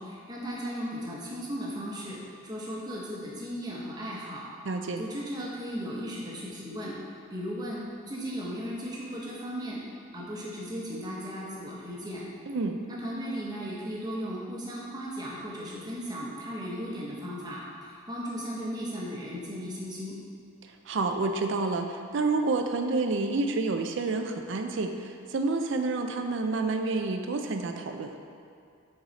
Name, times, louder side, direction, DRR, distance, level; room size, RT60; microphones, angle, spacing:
voice 1, 0.0-2.2 2.4-4.4 5.0-6.9 7.3-9.8 10.1-12.2 12.9-20.1, equal, 20° right, -5 dB, 1.0 m, -36 dB
voice 2, 4.6-5.0 12.5-12.8 20.6-28.1, right 3 dB, 60° right, 5 dB, 0.4 m, -29 dB
6.3 x 4.7 x 4.1 m, 2.3 s
head